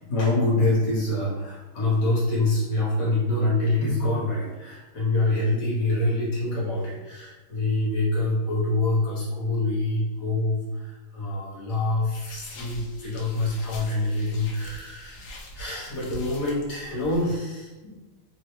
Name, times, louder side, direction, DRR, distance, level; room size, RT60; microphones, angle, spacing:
voice 1, 0.0-18.0, left 2 dB, 55° left, -7 dB, 1.6 m, -26 dB
sound 1, 12.1-17.4, left 1 dB, 80° left, 0.9 m, -44 dB
3.8 x 2.3 x 3.0 m, 1.2 s
omnidirectional pair, 2.4 m